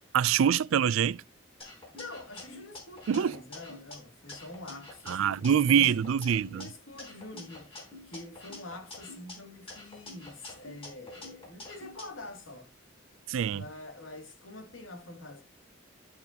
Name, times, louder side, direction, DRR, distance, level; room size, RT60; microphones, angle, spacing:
voice 1, 0.1-1.2 3.1-3.4 5.1-6.7 13.3-13.6, right 8 dB, 85° right, 0.4 m, -25 dB
voice 2, 1.6-5.9 6.5-12.7 13.5-15.4, left 2 dB, 80° left, 2.6 m, -46 dB
sound 1, 1.6-3.9 4.3-6.6 7.0-9.3 9.7-12.0, left 2 dB, 30° left, 4.2 m, -47 dB
12.0 x 5.9 x 2.9 m
head